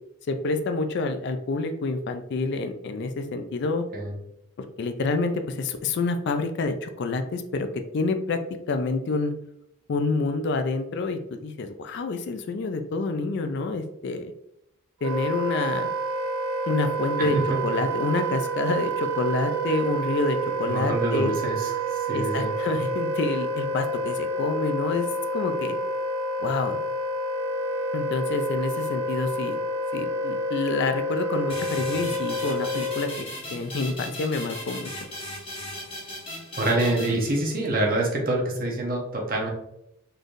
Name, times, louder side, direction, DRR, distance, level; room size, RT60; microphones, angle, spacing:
voice 1, 0.3-3.8 4.6-8.4 8.7-9.3 9.9-14.3 15.0-15.9 16.7-17.4 17.6-21.3 22.1-25.1 25.3-25.8 26.4-26.8 27.9-29.6 29.9-35.1, left 3 dB, 50° left, 7 dB, 0.3 m, -28 dB
Wind instrument woodwind instrument, 15.0-33.2, right 1 dB, 70° right, 0.4 m, -29 dB
voice 2, 17.2-17.6 20.7-21.7 22.1-22.5 36.6-39.5, right 1 dB, 40° right, 0 dB, 0.9 m, -26 dB
sound 1, 31.5-37.9, left 1 dB, 25° left, 1.1 m, -37 dB
3.9 x 3.3 x 2.5 m, 0.79 s
head